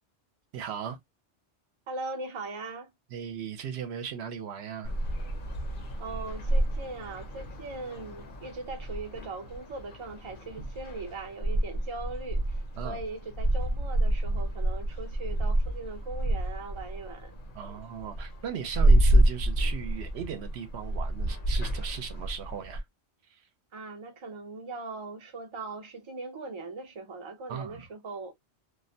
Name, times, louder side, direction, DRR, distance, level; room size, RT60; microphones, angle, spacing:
voice 1, 0.5-1.0 3.1-4.9 10.6-10.7 12.8-13.0 17.5-22.8 23.3-23.4 27.5-27.9, right 8 dB, 70° right, 0.8 m, -37 dB
voice 2, 1.9-2.9 6.0-17.4 17.6-17.8 23.7-28.3, right 3 dB, 50° right, 0.3 m, -40 dB
sound 1, 4.8-22.8, right 1 dB, 55° left, 0.7 m, -29 dB
2.4 x 2.1 x 2.6 m
omnidirectional pair, 1.2 m